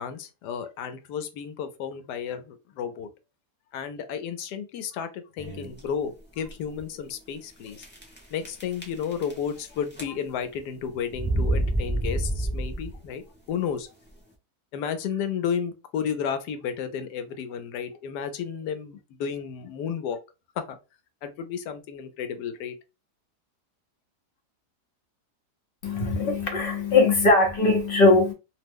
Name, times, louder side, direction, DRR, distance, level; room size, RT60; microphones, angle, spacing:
voice 1, 0.0-3.1 3.7-7.9 8.3-13.2 13.5-13.9 14.7-20.2 20.6-20.8 21.2-22.7, left 7 dB, 85° left, 1.2 m, -32 dB
sound 1, 5.4-5.8 6.4-6.5 6.8-6.9 7.8-8.2 8.4-9.6 9.9-10.4 11.1-13.1, right 1 dB, 15° left, 0.3 m, -28 dB
voice 2, 25.8-28.3, left 3 dB, 55° left, 0.6 m, -20 dB
2.8 x 2.0 x 3.4 m
omnidirectional pair, 1.7 m